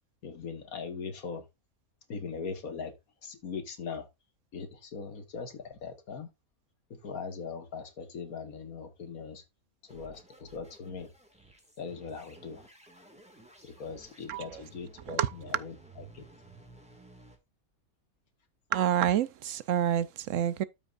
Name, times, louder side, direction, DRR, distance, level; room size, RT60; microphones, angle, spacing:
voice 1, 0.2-1.5 2.1-2.9 3.2-4.1 4.5-6.3 6.9-9.4 9.8-11.1 11.8-12.7 13.6-16.3, left 5 dB, 85° left, 2.0 m, -40 dB
sound 1, 9.9-17.4, right 2 dB, 5° right, 1.9 m, -55 dB
voice 2, 14.3-14.6 15.1-15.3 18.7-20.6, right 10 dB, 70° right, 0.9 m, -28 dB
13.0 x 5.2 x 2.5 m
omnidirectional pair, 1.5 m